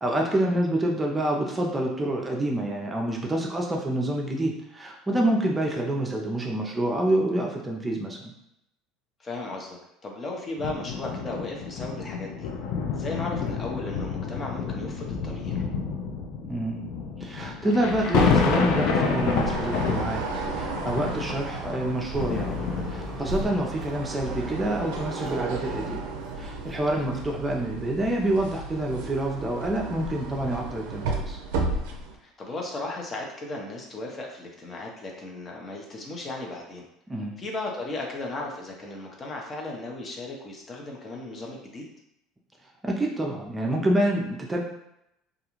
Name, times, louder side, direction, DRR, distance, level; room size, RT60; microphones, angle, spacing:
voice 1, 0.0-8.2 16.5-16.9 17.2-20.2 20.5-22.6 22.9-26.1 26.4-31.4 37.1-37.3 42.8-44.6, right 1 dB, 15° right, -1 dB, 0.5 m, -27 dB
voice 2, 9.2-12.5 12.9-15.6 26.9-27.1 32.2-36.8 37.4-41.8, left 2 dB, 30° left, 0 dB, 0.7 m, -36 dB
sound 1, 10.6-23.4 24.1-24.2, left 5 dB, 70° left, 0.4 m, -29 dB
sound 2, 17.9-32.2, right 3 dB, 80° right, 0.4 m, -34 dB
sound 3, 22.1-27.6, equal, 5° left, 0.9 m, -41 dB
2.4 x 2.3 x 3.0 m, 0.81 s
supercardioid pair, 90°, 0 cm